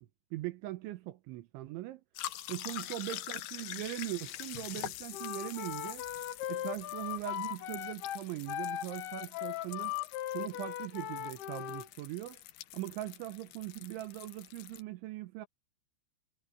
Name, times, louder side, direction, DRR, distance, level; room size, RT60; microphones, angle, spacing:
voice 1, 0.3-2.0 2.5-6.0 6.5-9.9 10.3-12.4 12.7-15.5, right 16 dB, 80° right, 3.4 m, -40 dB
sound 1, 2.2-14.8, left 14 dB, 90° left, 2.0 m, -45 dB
Wind instrument woodwind instrument, 5.1-11.9, left 12 dB, 65° left, 3.0 m, -38 dB
omnidirectional pair, 5.4 m